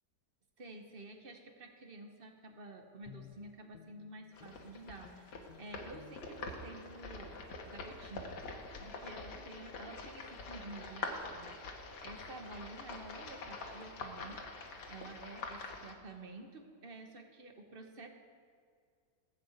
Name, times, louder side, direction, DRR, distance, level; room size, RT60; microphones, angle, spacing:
voice 1, 0.6-8.3 8.8-14.4 14.9-18.1, right 2 dB, 35° right, 4 dB, 1.1 m, -50 dB
Guitar, 3.0-4.7 5.0-6.8 7.2-7.4 7.8-8.1 8.4-8.6 8.8-9.0 9.3-9.5, left 9 dB, 90° left, 1.6 m, -57 dB
sound 1, 4.3-15.9, left 3 dB, 70° left, 1.8 m, -45 dB
15.0 x 6.1 x 8.1 m, 2.1 s
omnidirectional pair, 1.9 m